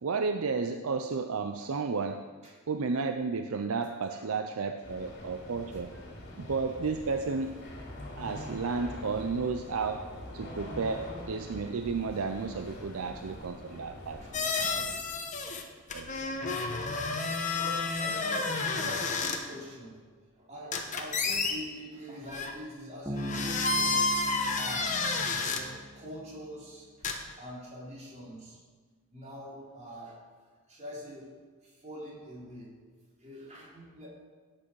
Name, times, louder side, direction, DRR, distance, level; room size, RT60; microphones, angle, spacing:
voice 1, 0.0-2.3 2.7-5.9 6.4-7.6 8.2-14.2 15.9-16.3, right 4 dB, 65° right, 7 dB, 0.5 m, -32 dB
sound 1, 4.8-14.5, left 1 dB, 50° left, 2.8 m, -44 dB
voice 2, 14.2-15.2 17.5-20.0 20.3-24.1 24.5-25.0 25.4-27.1 27.4-28.6 29.1-30.2 30.7-31.3 31.6-32.7 33.2-34.1, equal, 30° right, -5 dB, 4.0 m, -44 dB
sound 2, 14.3-15.6 15.9-19.4 20.7-21.5 22.3-22.5 23.2-25.6 27.0-27.1, left 3 dB, 35° left, 1.2 m, -30 dB
Bass guitar, 23.1-26.6, equal, 10° right, 1.2 m, -40 dB
17.0 x 7.7 x 4.7 m, 1.5 s
head